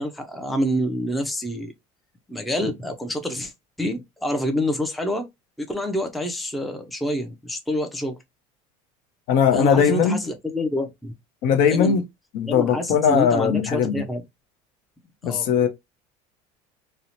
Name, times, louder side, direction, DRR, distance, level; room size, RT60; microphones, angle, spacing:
voice 1, 0.0-1.7 2.3-3.5 3.8-5.3 5.6-8.2 9.5-11.1 11.7-12.0 12.5-14.2 15.2-15.5, equal, ahead, 0.4 m, -27 dB
voice 2, 9.3-10.2 11.4-12.0 12.3-14.0 15.2-15.7, left 7 dB, 65° left, 0.6 m, -19 dB
2.7 x 2.0 x 2.7 m
cardioid pair, 125°, 16 cm